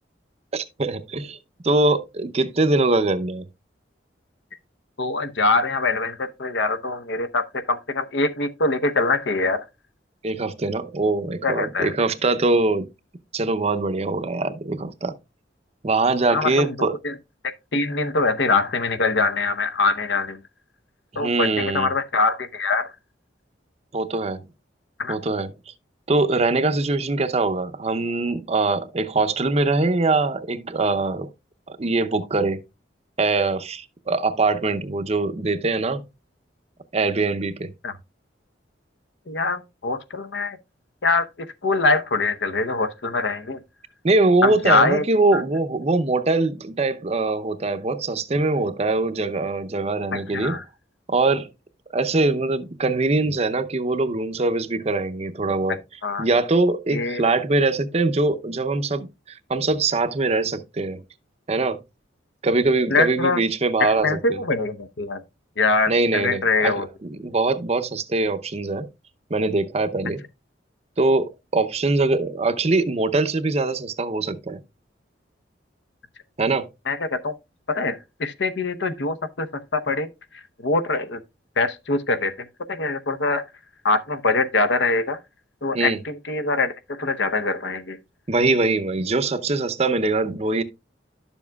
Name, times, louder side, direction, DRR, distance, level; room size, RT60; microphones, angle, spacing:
voice 1, 0.5-1.4 1.6-3.5 10.2-12.9 13.3-15.2 15.8-16.9 21.1-21.9 23.9-24.4 25.1-25.5 26.1-31.3 31.7-32.6 33.2-36.0 36.9-37.7 44.0-50.6 51.1-51.5 51.9-55.8 56.2-61.0 61.5-61.8 62.4-64.4 65.9-66.7 67.0-68.9 69.3-70.2 71.0-74.6 76.4-76.7 85.7-86.0 88.3-90.6, right 3 dB, 35° right, 0.6 m, -22 dB
voice 2, 5.0-9.6 11.4-11.9 16.3-17.1 17.4-20.4 21.2-22.9 25.0-25.2 37.8-37.9 39.3-40.6 41.0-43.6 44.4-45.1 45.3-45.4 50.1-50.6 56.0-56.3 56.9-57.2 62.9-63.4 63.8-65.2 65.6-66.9 76.9-77.3 77.7-80.1 80.6-81.2 81.6-82.3 82.7-83.4 83.8-85.2 85.6-88.0, left 3 dB, 70° left, 0.8 m, -23 dB
11.5 x 7.1 x 2.3 m
head